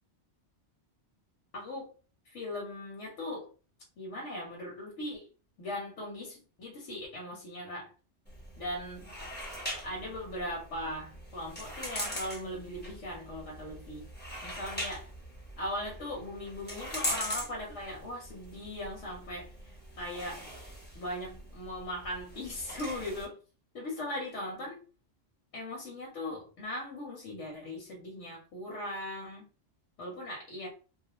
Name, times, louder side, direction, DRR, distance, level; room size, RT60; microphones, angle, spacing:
voice 1, 1.5-1.9 2.3-3.5 4.0-5.3 5.6-7.9 8.6-9.1 9.8-14.1 14.4-15.1 15.6-20.5 20.9-23.4 23.7-24.8 25.5-29.5 30.0-30.7, left 1 dB, 85° left, -1 dB, 1.1 m, -39 dB
sound 1, 8.2-23.2, equal, 10° left, 0.7 m, -41 dB
2.4 x 2.2 x 2.9 m, 0.35 s
omnidirectional pair, 1.2 m